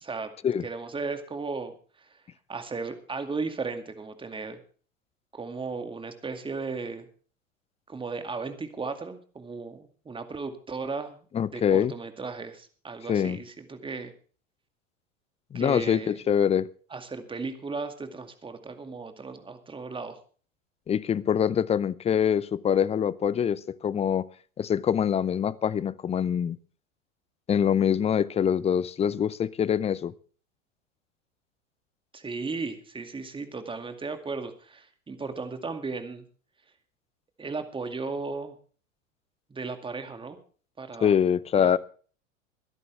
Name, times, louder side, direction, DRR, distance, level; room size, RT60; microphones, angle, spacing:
voice 1, 0.0-0.3 0.6-2.2 2.5-4.6 5.3-7.1 7.9-11.2 11.5-14.1 15.5-16.2 16.9-20.2 32.1-36.2 37.4-38.6 39.5-40.4 40.8-41.2 41.5-41.8, right 4 dB, 15° right, 2.2 m, -35 dB
voice 2, 11.3-11.9 13.1-13.4 15.5-16.7 20.9-24.3 24.6-26.6 27.5-30.1 41.0-41.8, left 8 dB, 15° left, 0.6 m, -24 dB
22.5 x 11.0 x 3.4 m
figure-of-eight pair, 90°, 38 cm